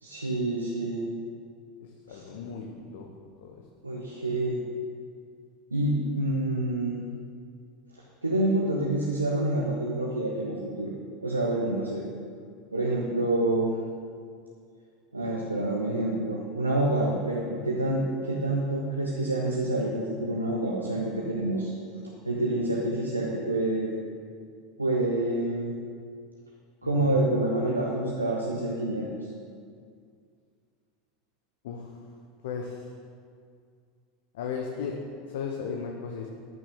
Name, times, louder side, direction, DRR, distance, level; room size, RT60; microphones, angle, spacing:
voice 1, 0.0-1.0 2.1-2.3 3.8-4.6 5.7-7.0 8.2-10.9 11.2-12.0 12.7-13.7 15.1-21.7 22.2-23.9 24.8-25.7 26.8-29.3, right 1 dB, 85° right, -3 dB, 1.1 m, -27 dB
voice 2, 1.8-3.1 3.4-3.6 26.8-27.2 31.6-31.9 32.4-32.9 34.3-35.0 35.3-36.3, left 6 dB, 65° left, 1 dB, 1.0 m, -36 dB
13.5 x 9.8 x 3.8 m, 2.2 s
figure-of-eight pair, 80°, 0 cm